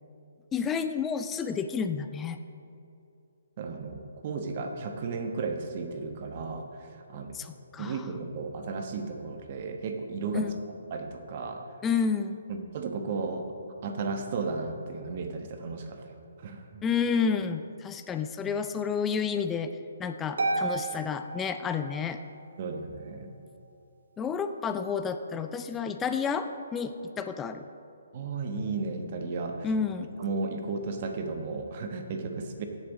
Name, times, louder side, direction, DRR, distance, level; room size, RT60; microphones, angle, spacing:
voice 1, 0.5-2.4 7.3-8.0 10.3-10.5 11.8-12.4 16.8-19.7 20.0-22.2 24.2-27.7 29.6-30.1, left 6 dB, 15° left, 8 dB, 0.4 m, -30 dB
voice 2, 3.6-7.4 7.8-10.4 10.9-11.6 12.5-13.5 13.8-16.1 16.4-16.8 22.6-23.3 28.1-29.7 30.2-32.6, right 4 dB, 45° right, 5 dB, 1.1 m, -34 dB
Harp, 20.4-22.3, right 3 dB, 75° right, 1.8 m, -32 dB
15.5 x 7.3 x 4.1 m, 2.6 s
hypercardioid pair, 145°, 0 cm